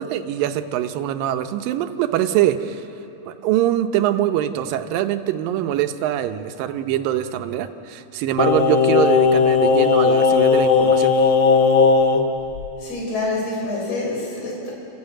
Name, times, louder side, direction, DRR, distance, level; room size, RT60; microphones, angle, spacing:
voice 1, 0.0-2.8 3.3-11.1, right 11 dB, 90° right, 9 dB, 2.6 m, -23 dB
Singing, 8.4-12.2 12.6-12.7, left 5 dB, 75° left, 1.1 m, -16 dB
voice 2, 12.8-14.7, left 2 dB, 45° left, -3 dB, 5.6 m, -26 dB
28.0 x 14.0 x 8.9 m, 2.9 s
omnidirectional pair, 3.9 m